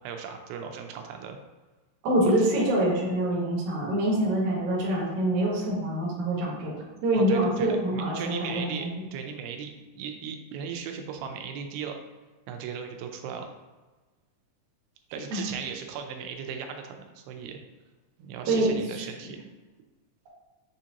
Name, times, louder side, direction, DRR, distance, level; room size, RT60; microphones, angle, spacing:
voice 1, 0.0-1.4 7.1-12.0 12.5-13.5 15.1-17.6 18.2-19.5, right 7 dB, 90° right, 5 dB, 2.4 m, -37 dB
voice 2, 2.0-6.7 7.0-8.9 15.3-15.4 18.5-19.0, right 1 dB, 60° right, -5 dB, 1.7 m, -25 dB
7.2 x 2.5 x 2.8 m, 1.2 s
omnidirectional pair, 4.1 m